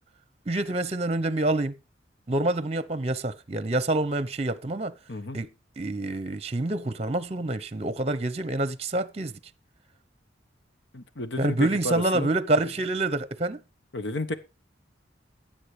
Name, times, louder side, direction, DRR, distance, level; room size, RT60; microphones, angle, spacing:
voice 1, 0.5-1.7 2.3-4.9 5.3-9.3 11.4-13.6, right 2 dB, 35° right, 0.9 m, -27 dB
voice 2, 10.9-12.3 13.9-14.3, left 2 dB, 70° left, 1.3 m, -32 dB
15.0 x 7.7 x 4.9 m
head